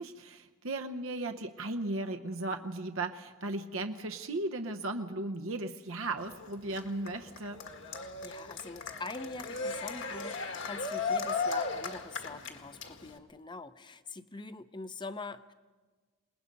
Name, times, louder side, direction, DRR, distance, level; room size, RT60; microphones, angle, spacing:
voice 1, 0.0-7.6, right 2 dB, 65° right, 5 dB, 0.9 m, -36 dB
Cheering, 6.2-13.2, left 4 dB, 55° left, 1.7 m, -36 dB
voice 2, 8.2-15.5, left 3 dB, 20° left, 11 dB, 0.7 m, -44 dB
28.0 x 20.0 x 5.4 m, 1.3 s
head